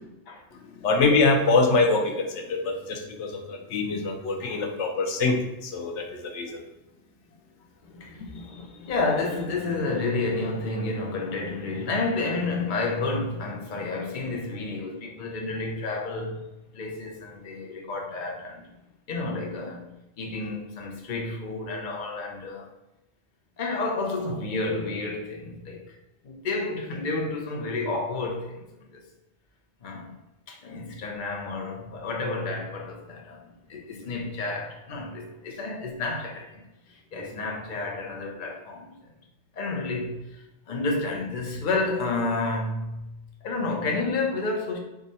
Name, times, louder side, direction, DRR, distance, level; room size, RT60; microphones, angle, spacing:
voice 1, 0.5-6.6 8.2-8.3, left 3 dB, 90° left, 3 dB, 1.0 m, -24 dB
voice 2, 7.8-16.5 16.7-18.7 19.1-19.9 20.2-22.7 23.6-26.0 26.2-28.7 28.9-29.0 29.8-30.1 30.5-39.1 39.5-43.1 43.4-44.8, left 3 dB, 50° left, 1 dB, 0.8 m, -30 dB
4.7 x 2.5 x 4.1 m, 0.97 s
omnidirectional pair, 1.2 m